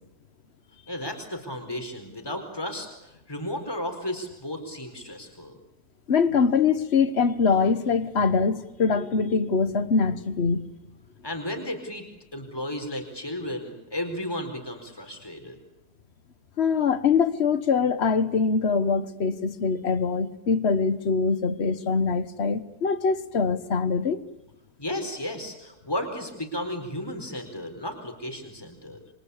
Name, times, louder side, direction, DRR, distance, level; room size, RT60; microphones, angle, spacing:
voice 1, 0.9-5.5 11.2-12.0 12.3-15.6 24.8-29.0, left 1 dB, 15° left, 4.6 m, -34 dB
voice 2, 6.1-10.7 16.6-24.2, left 5 dB, 45° left, 1.5 m, -23 dB
28.5 x 24.5 x 8.5 m
omnidirectional pair, 1.7 m